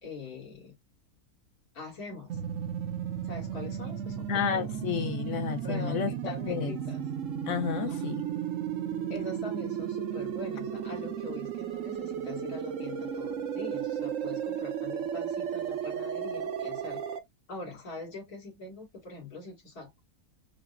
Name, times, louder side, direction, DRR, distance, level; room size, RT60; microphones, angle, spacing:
voice 1, 0.0-0.7 1.7-2.4 3.2-4.8 5.6-7.0 7.9-8.2 9.1-17.0 17.5-20.0, left 2 dB, 80° left, 2.3 m, -43 dB
sound 1, 2.3-17.2, right 9 dB, 65° right, 0.9 m, -34 dB
voice 2, 4.3-6.7 7.5-8.2, left 8 dB, 65° left, 0.9 m, -31 dB
5.8 x 2.0 x 2.4 m
omnidirectional pair, 1.6 m